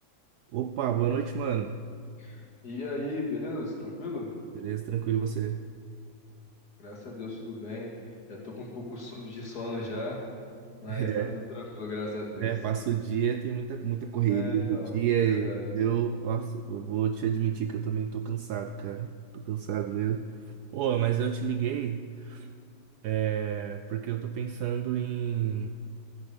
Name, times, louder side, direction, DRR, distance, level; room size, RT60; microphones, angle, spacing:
voice 1, 0.5-1.8 4.6-5.6 10.9-11.3 12.4-20.3 20.7-22.5 23.0-25.7, right 9 dB, 75° right, 8 dB, 0.9 m, -29 dB
voice 2, 2.2-4.3 6.8-10.2 10.8-12.5 14.3-14.9 15.2-15.7, left 2 dB, 55° left, -2 dB, 2.8 m, -37 dB
13.0 x 10.0 x 7.1 m, 2.2 s
omnidirectional pair, 2.1 m